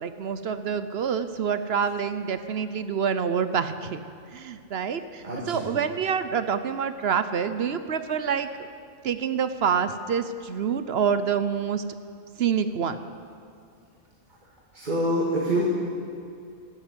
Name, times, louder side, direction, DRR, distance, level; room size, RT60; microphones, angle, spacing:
voice 1, 0.0-4.0 4.3-8.7 9.0-11.8 12.4-13.0, right 7 dB, 55° right, 11 dB, 0.9 m, -27 dB
voice 2, 5.2-5.7 14.7-15.7, equal, 35° right, -3 dB, 1.9 m, -26 dB
13.5 x 12.5 x 8.1 m, 2.5 s
omnidirectional pair, 1.4 m